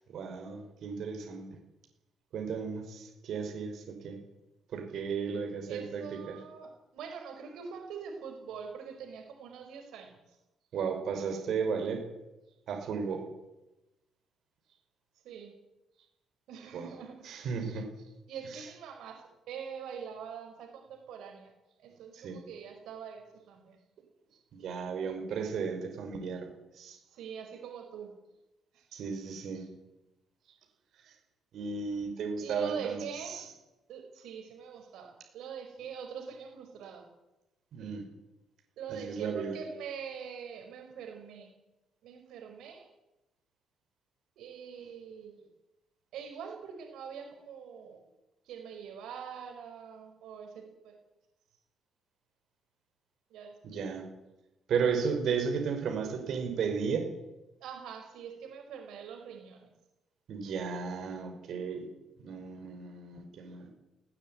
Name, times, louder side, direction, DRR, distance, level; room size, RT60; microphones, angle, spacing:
voice 1, 0.1-1.5 2.3-4.2 4.7-6.3 10.7-12.0 12.7-13.2 16.7-16.8 17.3-17.9 22.1-22.4 24.5-26.5 26.8-27.0 28.9-29.6 31.5-33.0 37.7-38.0 38.9-39.5 53.6-54.0 54.7-57.1 60.3-61.8 62.2-63.7, right 6 dB, 60° right, 3 dB, 5.5 m, -34 dB
voice 2, 5.7-10.4 15.2-15.5 16.5-17.2 18.3-21.5 21.8-23.8 27.1-28.1 28.7-28.8 32.4-33.4 33.9-37.0 38.8-41.5 42.0-42.9 44.4-45.4 46.1-48.0 48.4-51.0 53.3-53.6 57.6-59.7, right 7 dB, 85° right, 4 dB, 5.0 m, -44 dB
19.5 x 17.0 x 9.4 m, 0.97 s
cardioid pair, 155°, 0 cm